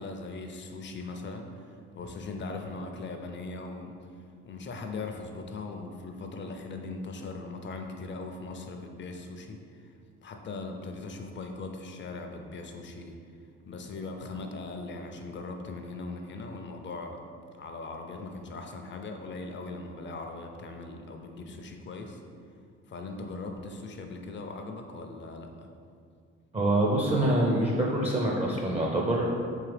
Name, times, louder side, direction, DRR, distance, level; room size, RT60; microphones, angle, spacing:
voice 1, 0.0-9.9 10.2-13.2 13.7-17.2 17.6-22.2 22.9-25.7, left 3 dB, 40° left, 4 dB, 0.4 m, -40 dB
voice 2, 26.5-29.2, right 1 dB, 20° right, -2 dB, 0.4 m, -25 dB
3.7 x 2.8 x 3.3 m, 2.3 s
cardioid pair, 90°, 30 cm